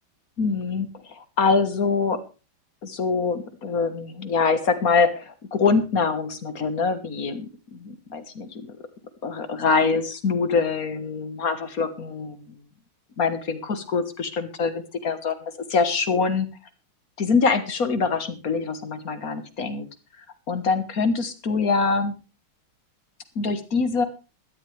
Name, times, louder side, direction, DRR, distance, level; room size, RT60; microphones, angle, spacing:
voice 1, 0.4-2.2 2.8-8.8 9.2-12.5 13.2-16.5 17.2-19.9 20.5-22.1 23.4-24.0, left 4 dB, 45° left, 9 dB, 1.8 m, -24 dB
17.0 x 13.0 x 3.4 m, 0.32 s
omnidirectional pair, 2.3 m